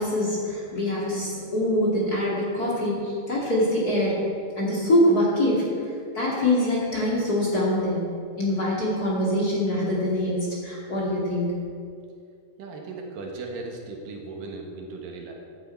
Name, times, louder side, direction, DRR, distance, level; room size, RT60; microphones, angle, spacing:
voice 1, 0.0-4.2 4.6-5.6 6.1-8.0 8.4-11.5, left 1 dB, 30° left, -5 dB, 2.0 m, -24 dB
voice 2, 12.6-15.3, right 3 dB, 65° right, 1 dB, 2.8 m, -37 dB
14.0 x 11.0 x 4.5 m, 2.3 s
omnidirectional pair, 4.6 m